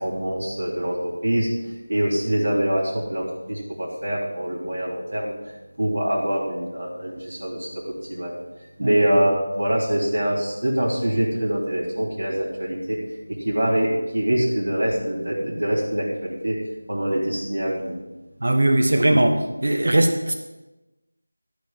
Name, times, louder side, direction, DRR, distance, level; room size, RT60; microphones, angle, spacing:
voice 1, 0.0-1.5 1.9-5.3 5.8-8.3 8.8-13.0 13.3-16.6 16.9-18.0, right 1 dB, 80° right, -3 dB, 3.3 m, -24 dB
voice 2, 18.4-19.3 19.6-20.3, right 1 dB, 55° right, 3 dB, 1.5 m, -19 dB
13.5 x 4.9 x 7.4 m, 1.0 s
figure-of-eight pair, 175°, 0 cm